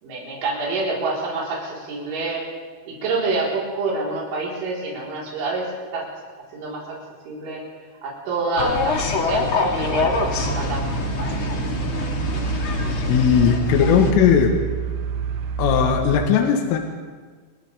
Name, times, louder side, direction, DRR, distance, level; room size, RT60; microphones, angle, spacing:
voice 1, 0.0-2.5 2.9-6.1 6.5-7.0 7.3-7.6 8.0-10.9 11.2-11.5, right 3 dB, 65° right, -5 dB, 7.0 m, -27 dB
sound 1, 8.6-14.1, left 3 dB, 55° left, 1.5 m, -25 dB
sound 2, 9.9-16.3, right 10 dB, 90° right, 2.2 m, -28 dB
voice 2, 12.8-14.6 15.6-16.8, left 8 dB, 80° left, 3 dB, 4.0 m, -18 dB
29.0 x 24.5 x 3.7 m, 1.5 s
omnidirectional pair, 5.8 m